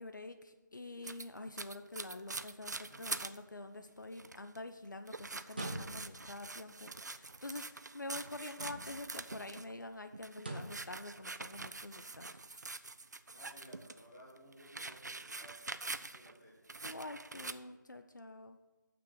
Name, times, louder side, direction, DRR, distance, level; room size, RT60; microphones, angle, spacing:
voice 1, 0.0-12.4 16.8-18.6, left 2 dB, 65° left, 8 dB, 0.7 m, -47 dB
sound 1, 1.0-3.4 3.8-3.9 4.1-4.6 5.1-9.7 10.1-14.0 14.4-16.4 16.7-17.5, right 3 dB, 55° right, 0.4 m, -45 dB
voice 2, 2.9-3.3 10.4-10.7 13.3-15.6 16.1-16.5, equal, 10° left, -6 dB, 1.4 m, -58 dB
sound 2, 5.5-6.3 8.5-9.1 10.4-10.9, right 1 dB, 30° right, 0.8 m, -43 dB
7.0 x 6.0 x 7.5 m, 1.1 s
figure-of-eight pair, 170°, 11 cm